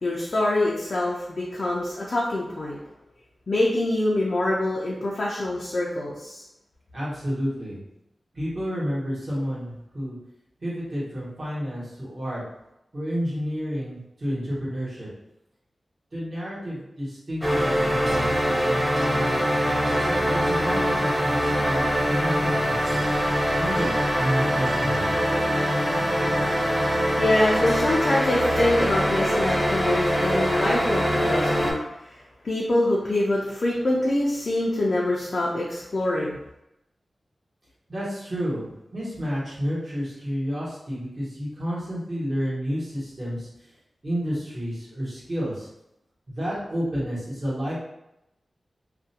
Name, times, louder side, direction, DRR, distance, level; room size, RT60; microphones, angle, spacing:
voice 1, 0.0-2.8 3.5-6.4 27.2-32.2 32.4-36.4, left 1 dB, 50° left, -5 dB, 0.4 m, -25 dB
voice 2, 6.9-7.8 8.3-10.2 10.6-12.4 12.9-15.1 16.1-18.3 19.8-23.0 23.6-25.2 37.9-43.7 44.0-45.7 46.3-47.8, equal, 40° right, -8 dB, 1.1 m, -30 dB
sound 1, 17.4-31.7, equal, 5° right, 0.5 m, -23 dB
2.4 x 2.1 x 2.7 m, 0.86 s
wide cardioid pair, 130°, 0 cm